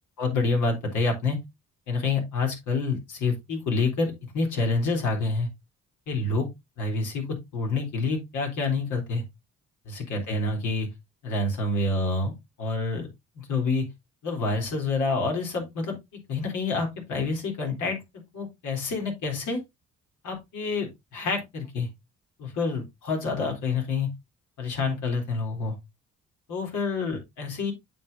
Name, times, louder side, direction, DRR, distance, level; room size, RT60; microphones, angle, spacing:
voice 1, 0.2-1.4 1.9-5.5 6.1-6.5 6.8-9.2 9.9-10.9 11.2-12.3 12.6-13.1 13.4-13.9 14.2-16.0 16.3-18.0 18.3-19.6 20.2-21.9 22.4-24.1 24.6-25.8 26.5-27.7, left 3 dB, 80° left, 3.6 m, -27 dB
9.2 x 6.7 x 2.7 m
cardioid pair, 90°, 30 cm